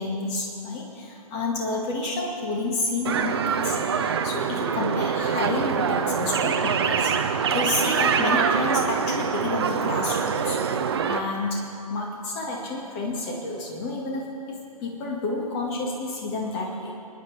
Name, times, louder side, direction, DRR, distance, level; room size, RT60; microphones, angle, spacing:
voice 1, 0.0-7.1 7.5-10.6 11.1-16.9, left 2 dB, 25° left, -1 dB, 2.1 m, -30 dB
sound 1, 3.0-11.2, right 6 dB, 40° right, 0.8 m, -24 dB
26.0 x 9.8 x 3.5 m, 2.6 s
figure-of-eight pair, 130°, 20 cm